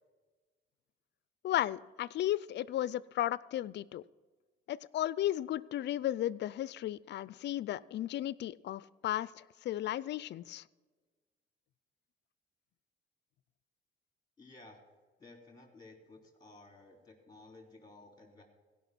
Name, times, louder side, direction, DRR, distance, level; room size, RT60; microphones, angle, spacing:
voice 1, 1.4-4.0 4.7-10.6, left 13 dB, 65° left, 20 dB, 0.4 m, -34 dB
voice 2, 14.4-14.8 15.2-18.4, left 2 dB, 20° left, 2 dB, 3.1 m, -55 dB
16.5 x 5.7 x 6.1 m, 1.4 s
cardioid pair, 90°, 20 cm